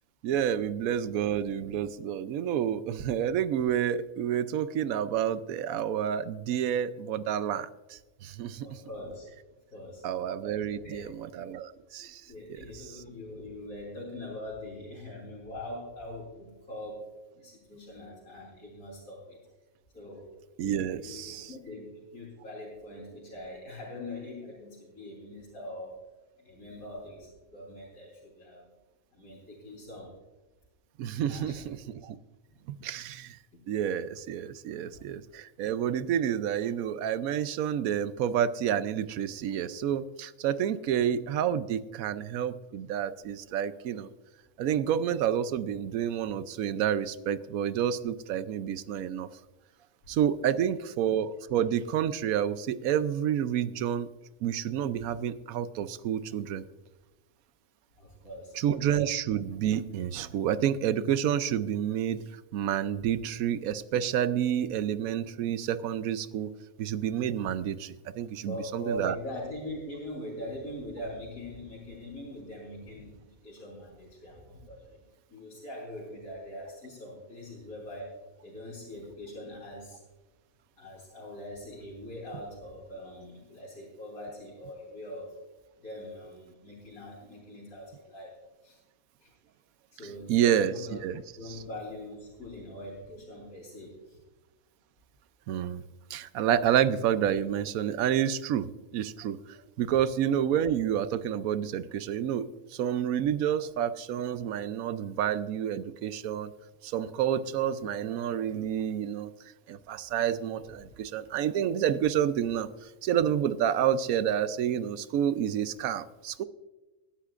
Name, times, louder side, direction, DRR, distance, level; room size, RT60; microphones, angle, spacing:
voice 1, 0.2-8.8 10.0-12.2 12.5-12.6 12.9-13.0 20.6-21.5 31.0-32.2 32.7-33.4 33.7-44.1 44.6-49.3 50.1-54.1 54.4-56.6 58.5-62.2 62.5-66.5 66.8-69.2 90.3-91.2 91.5-91.6 95.5-95.8 96.1-98.7 98.9-106.5 106.8-109.3 109.7-112.7 113.0-116.4, right 9 dB, 80° right, 14 dB, 1.0 m, -29 dB
voice 2, 8.6-9.3 9.7-10.0 10.5-11.1 12.0-17.1 17.3-19.4 19.9-20.3 21.0-26.0 26.4-28.7 29.1-30.1 31.2-31.7 33.5-33.6 50.6-50.7 58.0-58.6 68.4-75.0 75.3-80.0 80.8-85.3 85.8-88.4 88.6-88.8 89.2-89.3 89.9-91.0 91.4-94.2, left 1 dB, 75° left, -5 dB, 3.8 m, -42 dB
19.5 x 11.5 x 2.5 m, 1.2 s
omnidirectional pair, 1.5 m